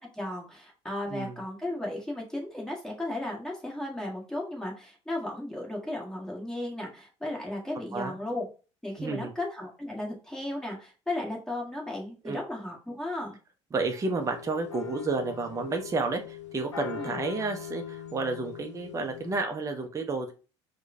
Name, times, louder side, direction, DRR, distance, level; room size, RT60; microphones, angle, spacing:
voice 1, 0.1-8.5 8.8-13.4 16.9-17.1, left 1 dB, 5° left, -2 dB, 1.4 m, -35 dB
voice 2, 9.0-9.3 12.2-12.4 13.7-20.3, right 3 dB, 20° right, 4 dB, 0.6 m, -31 dB
sound 1, 14.2-19.4, left 9 dB, 80° left, 0.5 m, -40 dB
4.5 x 2.2 x 2.7 m, 0.35 s
figure-of-eight pair, 60°, 15 cm